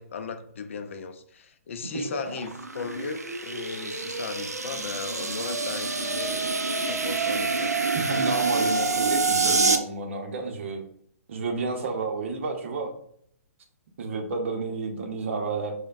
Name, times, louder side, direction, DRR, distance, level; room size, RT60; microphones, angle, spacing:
voice 1, 0.0-7.7, left 5 dB, 55° left, 9 dB, 0.4 m, -37 dB
sound 1, 1.8-9.8, right 3 dB, 80° right, 0.4 m, -27 dB
voice 2, 7.9-10.8 11.3-12.9 14.0-15.7, right 4 dB, 50° right, 4 dB, 0.7 m, -31 dB
4.9 x 2.1 x 2.5 m, 0.66 s
figure-of-eight pair, 120°, 8 cm